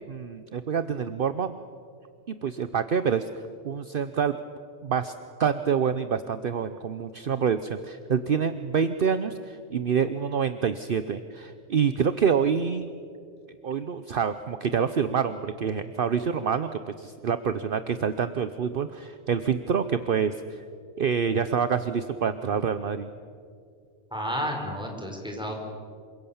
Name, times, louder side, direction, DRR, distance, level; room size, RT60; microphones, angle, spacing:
voice 1, 0.1-1.6 2.3-3.3 3.6-4.4 4.8-5.1 5.4-12.9 13.6-20.6 21.0-23.1, right 7 dB, 55° right, 11 dB, 1.0 m, -27 dB
voice 2, 24.1-25.5, equal, 5° right, 1 dB, 4.9 m, -31 dB
28.0 x 25.5 x 7.2 m, 2.2 s
omnidirectional pair, 1.2 m